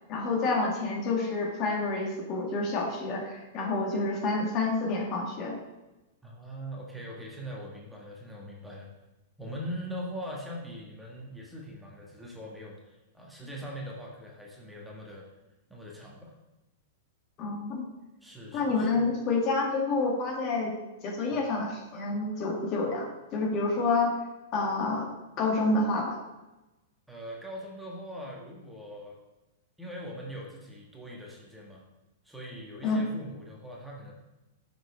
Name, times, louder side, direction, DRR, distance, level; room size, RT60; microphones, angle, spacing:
voice 1, 0.1-5.6 17.4-17.8 18.5-20.7 21.0-24.2 24.5-25.1 25.4-26.2 32.8-33.0, left 3 dB, 40° left, 0 dB, 1.6 m, -28 dB
voice 2, 6.2-8.9 9.4-15.3 15.7-16.3 18.2-19.0 21.3-21.4 27.1-29.2 29.8-31.8 32.2-34.1, equal, 5° right, -3 dB, 1.6 m, -41 dB
6.3 x 4.9 x 4.9 m, 1.0 s
figure-of-eight pair, 105°, 0 cm